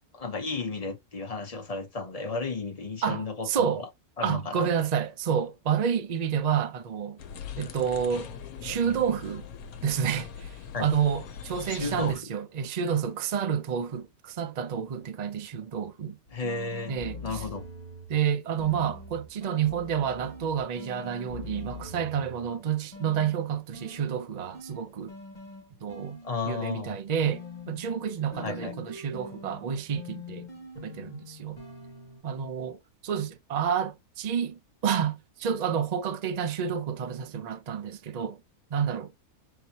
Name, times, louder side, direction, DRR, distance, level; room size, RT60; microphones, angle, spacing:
voice 1, 0.1-3.9 4.2-4.7 10.7-10.9 11.7-12.2 16.3-16.9 17.2-17.7 26.2-27.0 28.4-28.7, left 3 dB, 50° left, 0.4 m, -33 dB
voice 2, 3.0-3.8 4.2-7.2 7.6-8.3 8.6-9.4 9.8-16.2 16.9-17.4 18.1-25.1 25.8-26.2 26.4-30.5 30.8-31.6 32.2-38.4 38.7-39.2, right 8 dB, 80° right, 0.3 m, -29 dB
sound 1, 7.2-12.2, left 7 dB, 75° left, 1.2 m, -41 dB
sound 2, 16.3-18.2 18.6-22.6 22.9-26.6 27.2-32.2, left 2 dB, 30° left, 2.0 m, -44 dB
4.5 x 3.6 x 2.8 m
omnidirectional pair, 1.6 m